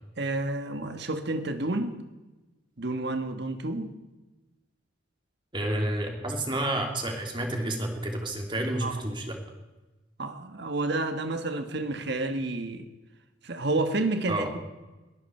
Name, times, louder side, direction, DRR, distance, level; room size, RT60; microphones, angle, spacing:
voice 1, 0.2-2.0 2.8-3.9 8.8-8.9 10.2-12.9 13.4-14.6, right 2 dB, 60° right, 8 dB, 1.6 m, -30 dB
voice 2, 5.5-9.4 14.3-14.5, right 1 dB, 25° right, 2 dB, 2.8 m, -30 dB
21.5 x 15.0 x 4.5 m, 1.1 s
head